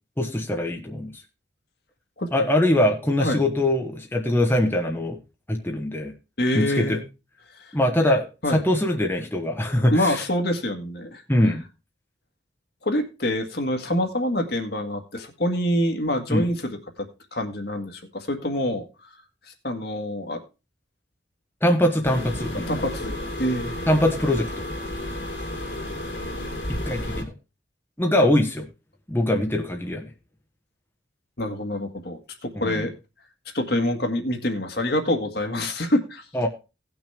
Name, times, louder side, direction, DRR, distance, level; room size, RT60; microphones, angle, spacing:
voice 1, 0.2-1.1 2.3-5.2 5.5-6.1 6.5-7.0 7.7-10.2 11.3-11.6 16.3-16.5 21.6-22.8 23.9-24.6 26.9-27.3 28.0-28.6 29.1-30.1 32.6-32.8 36.3-36.5, left 1 dB, 10° left, 2 dB, 1.1 m, -22 dB
voice 2, 6.4-7.0 7.5-7.7 8.4-8.6 9.9-11.2 12.8-17.1 17.3-19.1 19.6-20.4 22.7-23.8 28.2-28.3 31.4-32.9 33.5-36.3, left 1 dB, 55° left, 4 dB, 1.8 m, -26 dB
sound 1, 22.0-27.2, left 1 dB, 80° left, 3.0 m, -32 dB
18.0 x 6.1 x 3.4 m, 0.29 s
head